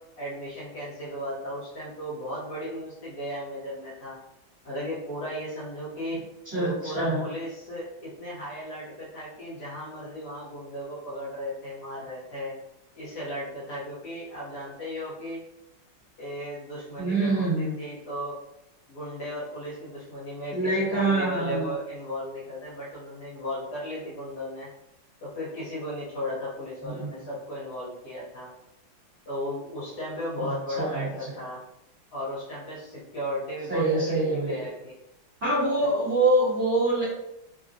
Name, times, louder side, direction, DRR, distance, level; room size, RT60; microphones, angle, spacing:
voice 1, 0.2-4.2 4.6-6.2 6.5-12.5 13.0-15.4 16.2-18.4 18.9-20.6 20.9-24.7 25.2-28.5 29.2-31.6 32.1-34.9, equal, 55° left, -7 dB, 1.3 m, -35 dB
voice 2, 6.5-7.2 17.0-17.7 20.5-21.7 26.8-27.1 30.4-31.1 33.7-34.6 35.4-37.1, right 2 dB, 40° right, -12 dB, 1.3 m, -25 dB
3.5 x 2.2 x 2.5 m, 0.85 s
omnidirectional pair, 2.3 m